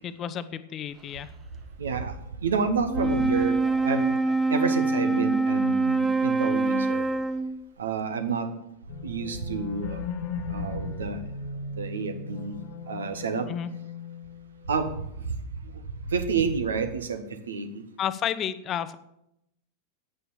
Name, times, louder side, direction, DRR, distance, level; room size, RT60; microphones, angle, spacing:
voice 1, 0.0-1.3 13.5-13.7 18.0-18.9, left 9 dB, 30° left, 14 dB, 0.7 m, -31 dB
voice 2, 1.8-2.1 2.4-4.2 4.5-7.1 7.8-8.5 9.0-10.0 10.5-11.2 11.8-12.5 12.9-13.5 14.7-14.9 16.1-17.7, right 5 dB, 70° right, 9 dB, 1.2 m, -29 dB
Wind instrument woodwind instrument, 2.8-7.6, right 3 dB, 20° right, 0.8 m, -24 dB
sound 1, 8.9-14.7, left 5 dB, 50° left, 1.1 m, -37 dB
9.0 x 9.0 x 6.8 m, 0.81 s
figure-of-eight pair, 90°, 0 cm